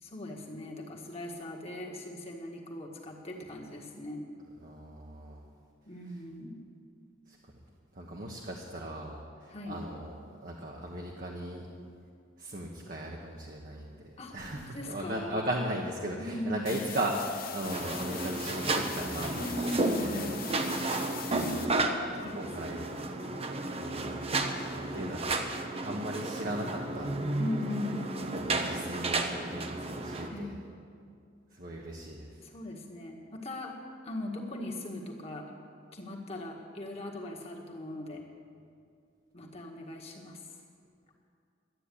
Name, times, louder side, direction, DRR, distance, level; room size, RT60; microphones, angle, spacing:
voice 1, 0.0-4.3 5.9-6.6 9.5-9.8 14.2-15.4 16.2-16.9 19.3-20.4 22.2-23.0 27.4-28.4 30.3-30.6 32.4-33.8 34.0-35.5 35.9-38.2 39.3-40.4, left 1 dB, 30° left, -1 dB, 1.7 m, -39 dB
voice 2, 4.6-5.4 7.3-7.5 7.9-10.1 10.4-11.7 12.4-20.3 20.7-20.8 21.3-21.8 22.1-22.8 23.7-24.3 24.7-25.3 25.8-27.2 28.2-30.5 31.5-32.4, right 1 dB, 45° right, -1 dB, 1.2 m, -37 dB
sound 1, 16.7-21.7, left 9 dB, 50° left, 1.0 m, -42 dB
sound 2, 17.6-30.3, right 2 dB, 30° right, 0.8 m, -33 dB
12.5 x 9.3 x 8.6 m, 2.3 s
head